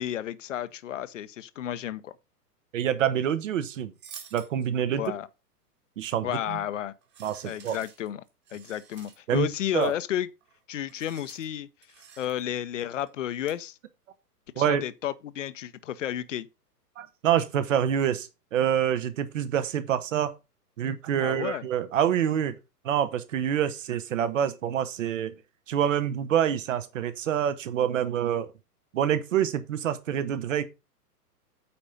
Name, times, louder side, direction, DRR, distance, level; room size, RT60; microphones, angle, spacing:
voice 1, 0.0-2.1 5.0-5.3 6.2-6.9 7.5-8.2 8.5-10.3 10.7-11.7 12.2-13.8 14.6-16.5 21.2-21.6, left 11 dB, 50° left, 0.8 m, -32 dB
voice 2, 2.7-3.9 4.3-5.1 6.0-6.6 7.2-7.8 9.3-9.5 9.7-9.9 14.6-14.8 17.0-20.3 20.8-22.6 22.8-25.3 25.7-28.5 28.9-30.6, right 9 dB, 50° right, 1.2 m, -26 dB
sound 1, 4.0-4.5 6.3-6.6 7.0-9.4 9.7-9.9 10.4-10.6 10.9-11.5 11.8-12.4 12.8-13.1 13.5-13.6, right 7 dB, 20° right, 1.6 m, -50 dB
8.6 x 4.4 x 5.2 m
figure-of-eight pair, 115°, 48 cm